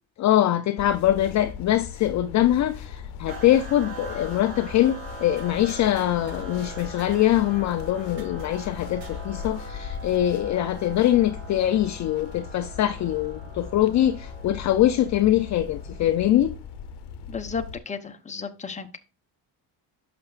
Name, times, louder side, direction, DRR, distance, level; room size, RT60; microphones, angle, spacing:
voice 1, 0.2-16.5, left 12 dB, 45° left, 0.5 m, -23 dB
sound 1, 0.8-17.8, left 7 dB, 75° left, 0.9 m, -39 dB
sound 2, 3.3-16.7, right 2 dB, 85° right, 4.3 m, -42 dB
sound 3, 5.4-6.4 6.8-7.4 7.6-7.7 8.2-9.3, right 1 dB, 45° right, 4.8 m, -50 dB
voice 2, 17.3-19.0, left 5 dB, 15° left, 0.9 m, -33 dB
11.0 x 6.8 x 2.4 m
cardioid pair, 125°, 41 cm